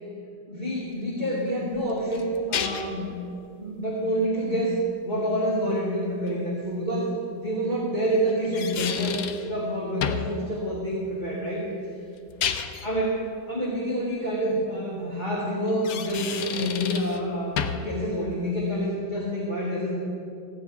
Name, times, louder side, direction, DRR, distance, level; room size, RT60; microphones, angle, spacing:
voice 1, 0.5-3.1 3.6-4.7 5.0-11.7 12.8-20.0, equal, 25° left, -7 dB, 1.9 m, -27 dB
sound 1, 1.7-3.0 6.3-6.4 8.3-9.5 10.0-10.4 12.2-12.9 15.7-17.2 17.6-17.9, left 7 dB, 65° left, 1.0 m, -31 dB
15.0 x 5.3 x 9.5 m, 2.5 s
omnidirectional pair, 2.0 m